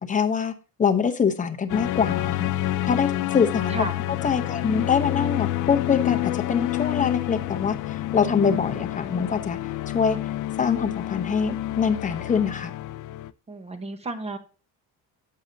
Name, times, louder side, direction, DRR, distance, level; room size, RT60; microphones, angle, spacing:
voice 1, 0.1-0.5 0.8-2.5 2.9-3.7 4.2-9.6 9.9-10.2 10.6-12.7, left 6 dB, 20° left, 8 dB, 0.8 m, -24 dB
sound 1, 1.7-13.3, left 15 dB, 60° left, 0.5 m, -28 dB
voice 2, 13.5-14.4, right 1 dB, 15° right, 8 dB, 1.1 m, -32 dB
10.5 x 7.7 x 2.8 m, 0.34 s
cardioid pair, 165°, 36 cm